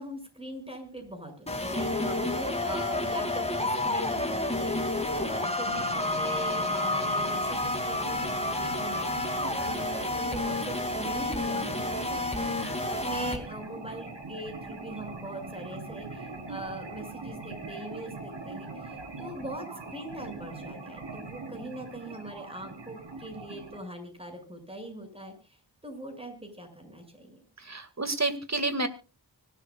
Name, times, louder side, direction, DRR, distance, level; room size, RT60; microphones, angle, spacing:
voice 1, 0.0-25.6 25.8-27.4, right 1 dB, 15° right, 5 dB, 6.7 m, -41 dB
sound 1, 1.5-13.4, left 2 dB, 15° left, 2.7 m, -30 dB
sound 2, 5.7-23.8, right 3 dB, 85° right, 4.4 m, -42 dB
voice 2, 27.6-28.9, right 2 dB, 40° right, 10 dB, 2.2 m, -29 dB
25.0 x 12.5 x 2.4 m, 0.31 s
wide cardioid pair, 55°, 42 cm